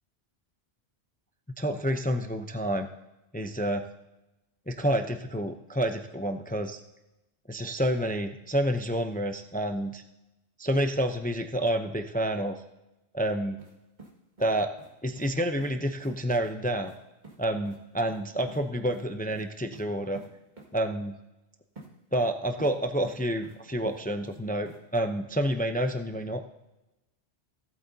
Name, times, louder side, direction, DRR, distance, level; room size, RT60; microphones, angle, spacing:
voice 1, 1.6-2.9 3.3-3.8 4.7-6.8 7.5-10.0 10.6-12.6 13.1-13.6 14.4-14.7 15.0-16.9 17.4-20.2 20.7-21.2 22.1-26.4, right 1 dB, 10° left, 6 dB, 0.4 m, -29 dB
sound 1, 13.6-13.7 14.0-14.9 15.2-15.3 15.6-15.7 16.0-16.1 16.4-16.5 16.8-17.0 17.2-17.4 17.6-17.8 18.1-18.6 18.9-19.0 19.3-19.4 19.7-19.8 20.1-20.3 20.6-20.7 21.8-21.9 22.2-22.7 23.0-23.6 23.9-24.4 24.7-24.8, right 3 dB, 45° right, 2.2 m, -48 dB
18.0 x 8.3 x 2.8 m, 0.97 s
omnidirectional pair, 1.1 m